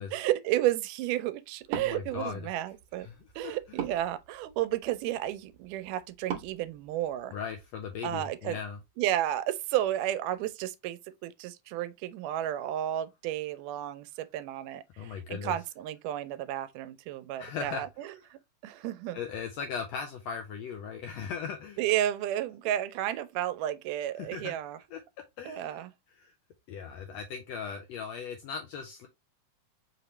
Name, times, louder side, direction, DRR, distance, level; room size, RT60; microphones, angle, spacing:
voice 1, 0.1-3.1 3.4-7.3 8.0-8.6 9.0-19.2 21.8-24.8 25.5-25.9, right 13 dB, 85° right, 2.1 m, -32 dB
Wood, 1.6-7.7, right 9 dB, 70° right, 1.7 m, -43 dB
voice 2, 1.7-2.4 3.0-3.2 3.4-3.6 7.3-8.8 15.0-15.5 17.4-17.8 19.1-21.8 24.2-24.5 24.9-25.0 25.4-25.8 26.2-26.3 26.7-29.1, left 6 dB, 80° left, 1.5 m, -38 dB
5.2 x 2.9 x 3.1 m
omnidirectional pair, 3.6 m